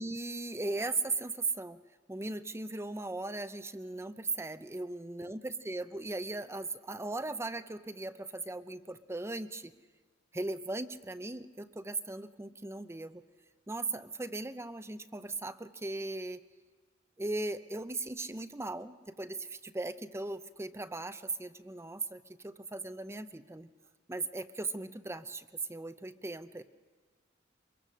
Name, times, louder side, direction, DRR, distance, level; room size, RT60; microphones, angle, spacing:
voice 1, 0.0-1.8 2.1-9.7 10.3-13.2 13.7-16.4 17.2-23.7 24.1-26.6, right 2 dB, 15° right, 11 dB, 0.7 m, -38 dB
24.5 x 22.0 x 6.4 m, 1.4 s
head